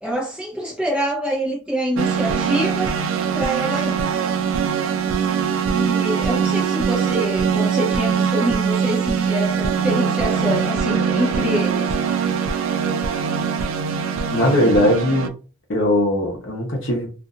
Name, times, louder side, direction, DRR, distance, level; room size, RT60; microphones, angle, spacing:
voice 1, 0.0-2.9 3.3-4.2 5.7-11.9, equal, 5° right, 0.7 m, -25 dB
sound 1, 2.0-15.3, right 6 dB, 65° right, 0.3 m, -22 dB
voice 2, 14.3-15.3 15.7-17.1, left 1 dB, 60° left, 0.8 m, -19 dB
2.5 x 2.5 x 2.4 m
head